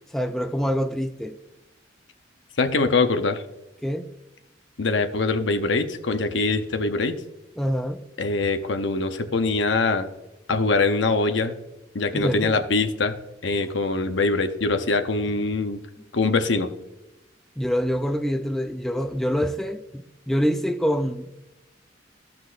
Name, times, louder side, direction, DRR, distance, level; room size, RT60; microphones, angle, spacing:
voice 1, 0.1-1.4 3.8-4.1 7.6-8.0 12.1-12.6 17.6-21.4, equal, ahead, 0.4 m, -26 dB
voice 2, 2.6-3.4 4.8-7.2 8.2-10.1 10.5-11.6 11.9-13.2 13.4-15.8 16.1-16.7, left 3 dB, 75° left, 0.8 m, -23 dB
15.0 x 6.0 x 2.5 m
head